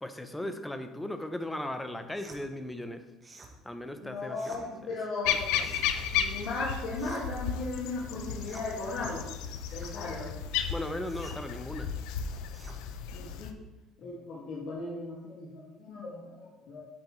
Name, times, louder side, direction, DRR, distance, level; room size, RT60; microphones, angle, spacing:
voice 1, 0.0-3.0 3.6-5.0 5.2-5.8 10.7-11.9 14.0-14.1, left 1 dB, 5° left, 8 dB, 0.6 m, -38 dB
sound 1, 2.1-2.4 3.2-3.5 4.3-4.6 5.5-5.9 6.9-7.4 8.4-8.7 9.7-10.0 11.0-11.4 12.5-12.8, right 2 dB, 15° right, 1.1 m, -50 dB
voice 2, 3.9-5.5 5.8-9.3 9.7-10.3 13.1-13.6 14.0-16.9, left 3 dB, 55° left, -7 dB, 1.9 m, -37 dB
sound 2, 5.3-13.5, left 8 dB, 85° left, 0.6 m, -34 dB
8.6 x 7.9 x 3.1 m, 1.1 s
cardioid pair, 155°, 0 cm